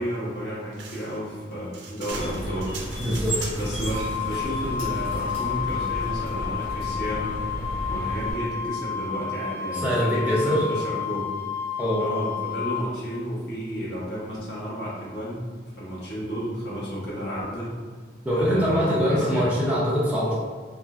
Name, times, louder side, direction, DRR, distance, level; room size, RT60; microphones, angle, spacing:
voice 1, 0.0-2.7 3.5-7.3 7.9-11.3 12.0-15.5 15.8-17.7 18.4-19.5, equal, 65° left, -8 dB, 1.0 m, -32 dB
sound 1, 0.7-3.9, right 4 dB, 80° right, 0.4 m, -40 dB
sound 2, 2.1-8.3, equal, 85° left, 1.3 m, -33 dB
voice 2, 3.0-3.5 9.7-10.7 11.8-12.1 18.2-20.4, equal, 10° right, -7 dB, 0.4 m, -23 dB
Wind instrument woodwind instrument, 3.9-12.8, left 8 dB, 35° left, 1.1 m, -31 dB
2.9 x 2.4 x 2.4 m, 1.5 s
head